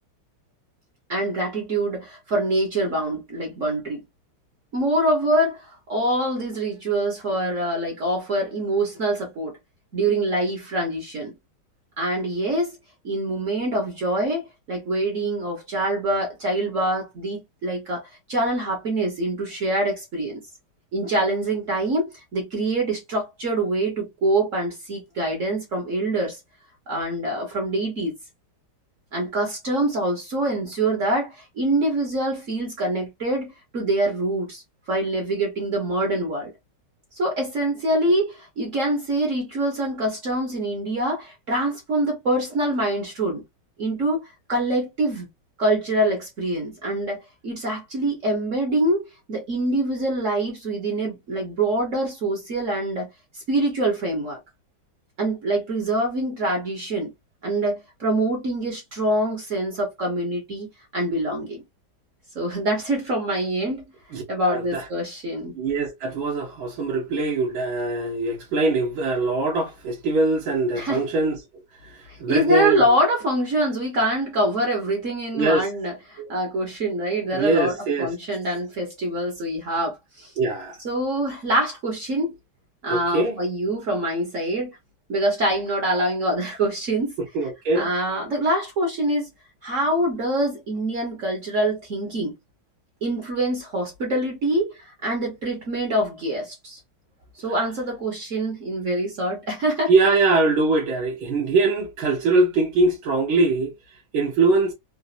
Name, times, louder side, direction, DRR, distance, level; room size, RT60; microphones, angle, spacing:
voice 1, 1.1-4.0 4.7-9.5 9.9-11.3 12.0-12.8 13.0-20.4 20.9-26.4 26.9-28.1 29.1-34.6 34.9-36.5 37.1-43.4 43.8-44.2 44.5-45.3 45.6-49.0 49.3-53.1 53.5-54.4 55.2-57.1 57.4-60.7 60.9-61.6 62.3-63.8 64.3-65.6 70.7-71.0 72.3-80.3 80.8-82.3 82.8-84.8 85.1-87.1 87.7-89.3 89.6-92.3 93.0-94.7 95.0-96.8 97.4-99.9, right 1 dB, 45° right, 1.2 m, -25 dB
voice 2, 64.1-64.8 65.6-71.4 71.8-72.9 75.3-75.7 76.2-76.3 77.3-78.1 80.4-80.8 82.9-83.4 87.4-87.9 99.9-103.7 104.1-104.7, right 3 dB, 80° right, 1.7 m, -22 dB
4.0 x 2.5 x 2.4 m
omnidirectional pair, 2.2 m